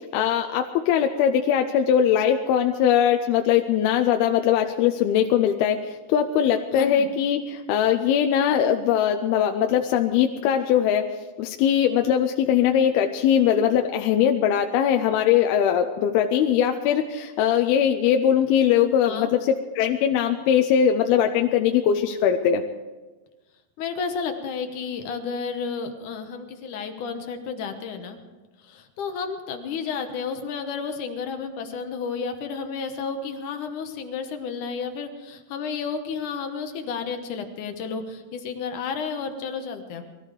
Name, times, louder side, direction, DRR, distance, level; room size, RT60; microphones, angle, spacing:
voice 1, 0.1-11.1 11.4-22.6, left 9 dB, 85° left, 5 dB, 2.6 m, -21 dB
voice 2, 6.7-7.1 19.0-19.3 23.8-28.2 28.6-40.0, left 5 dB, 65° left, 6 dB, 2.2 m, -32 dB
21.0 x 14.0 x 4.9 m, 1.2 s
omnidirectional pair, 4.5 m